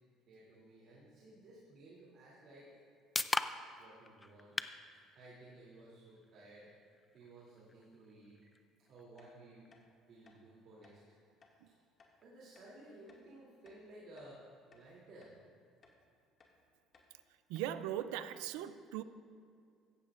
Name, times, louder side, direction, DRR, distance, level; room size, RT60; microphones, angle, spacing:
voice 1, 0.3-2.8 3.8-4.6 5.1-6.7 7.1-8.4 8.9-9.7 10.1-11.0 11.6-11.8 12.2-14.4 14.7-15.3, right 1 dB, 60° right, -7 dB, 3.0 m, -56 dB
sound 1, 2.4-16.3, left 2 dB, 15° left, 0.5 m, -46 dB
sound 2, 9.2-9.3 9.7-9.8 10.2-10.4 10.8-11.0 11.4-11.6 12.0-12.1 12.6-12.7 13.1-13.3 13.7-14.4 14.7-14.9 15.2-15.4 15.8-16.0 16.4-16.6 16.9-17.1 17.6-17.7 18.0-18.1 18.3-18.5, left 4 dB, 40° left, 2.1 m, -65 dB
voice 2, 17.5-19.0, right 11 dB, 90° right, 12 dB, 0.5 m, -39 dB
15.5 x 14.5 x 2.5 m, 2.4 s
supercardioid pair, 100°, 0 cm